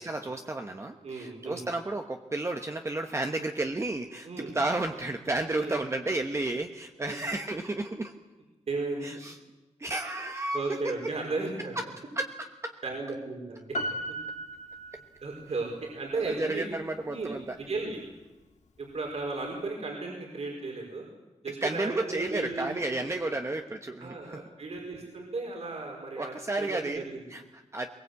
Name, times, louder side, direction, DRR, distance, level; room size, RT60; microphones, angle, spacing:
voice 1, 0.0-8.1 9.0-9.4 9.8-10.8 11.6-11.8 12.2-12.3 12.6-12.7 16.1-17.6 21.6-24.4 26.1-27.9, right 2 dB, 25° right, 4 dB, 1.1 m, -32 dB
voice 2, 1.0-1.6 4.2-4.5 5.5-5.7 7.0-7.2 8.7-9.1 10.5-11.7 12.8-13.6 15.2-16.7 17.1-17.4 17.7-18.0 18.8-21.0 21.4-22.7 23.0-23.4 24.0-27.2, right 3 dB, 65° right, -1 dB, 5.0 m, -35 dB
Piano, 13.7-15.5 15.8-15.9, right 1 dB, 80° left, 2.5 m, -36 dB
22.5 x 21.0 x 8.4 m, 1.1 s
wide cardioid pair, 145°, 12 cm